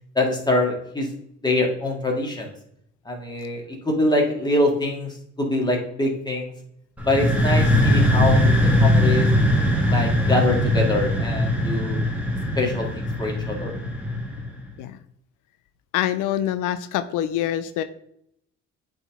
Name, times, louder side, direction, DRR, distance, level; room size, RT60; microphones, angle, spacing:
voice 1, 0.2-1.1 1.4-2.5 3.1-6.5 7.0-8.5 8.8-9.3 9.9-12.1 12.6-13.7, left 1 dB, 15° left, -1 dB, 1.9 m, -24 dB
sound 1, 7.0-14.6, left 1 dB, 5° right, 1.4 m, -20 dB
voice 2, 15.9-17.8, left 11 dB, 90° left, 11 dB, 0.5 m, -25 dB
8.1 x 3.7 x 3.6 m, 0.73 s
cardioid pair, 90°, 30 cm